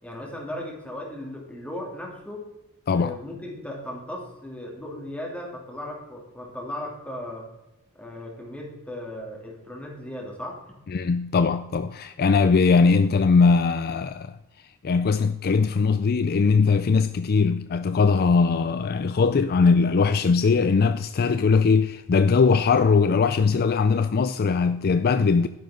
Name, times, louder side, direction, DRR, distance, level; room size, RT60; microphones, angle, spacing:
voice 1, 0.0-2.5 2.9-7.5 7.9-10.6, left 1 dB, 5° left, 3.0 m, -36 dB
voice 2, 10.9-14.4 14.8-25.5, left 4 dB, 45° left, 0.4 m, -20 dB
12.0 x 10.0 x 3.8 m
head